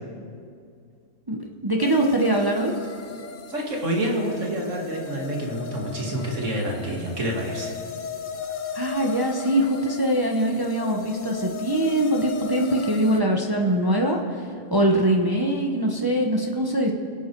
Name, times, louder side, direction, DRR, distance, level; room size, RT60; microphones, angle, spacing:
voice 1, 1.6-2.7 8.7-14.4 14.7-16.9, right 1 dB, 20° right, 1 dB, 0.9 m, -22 dB
sound 1, 1.8-13.2, left 6 dB, 45° left, 0.7 m, -36 dB
voice 2, 3.5-7.8, right 1 dB, 60° right, 0 dB, 2.4 m, -28 dB
24.0 x 8.8 x 4.6 m, 2.3 s
omnidirectional pair, 1.5 m